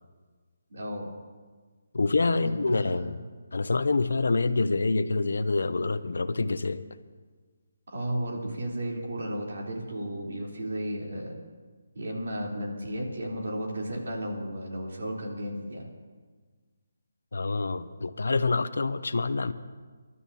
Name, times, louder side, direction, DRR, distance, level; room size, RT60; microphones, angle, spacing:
voice 1, 0.7-1.1 2.3-3.1 7.9-11.4 11.9-15.9, equal, 65° right, -2 dB, 3.7 m, -34 dB
voice 2, 1.9-3.1 3.5-6.8 17.3-19.5, left 3 dB, 80° left, 12 dB, 0.7 m, -26 dB
26.0 x 12.5 x 2.9 m, 1.4 s
hypercardioid pair, 170°, 0 cm